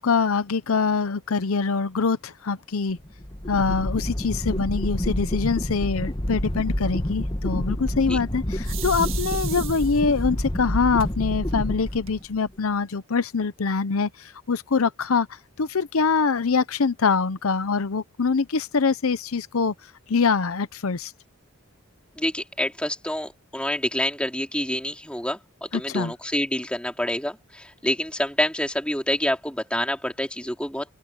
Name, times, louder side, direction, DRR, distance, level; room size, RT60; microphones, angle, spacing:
voice 1, 0.0-3.0 3.5-15.3 15.6-19.7 20.1-21.1 25.7-26.1, left 5 dB, 80° left, 0.7 m, -24 dB
sound 1, 3.0-12.5, left 1 dB, 20° left, 1.2 m, -28 dB
sound 2, 8.6-10.2 11.0-11.1 11.5-11.6 11.9-12.5, right 14 dB, 70° right, 1.7 m, -36 dB
voice 2, 22.1-30.9, left 1 dB, 5° left, 2.9 m, -27 dB
open air
head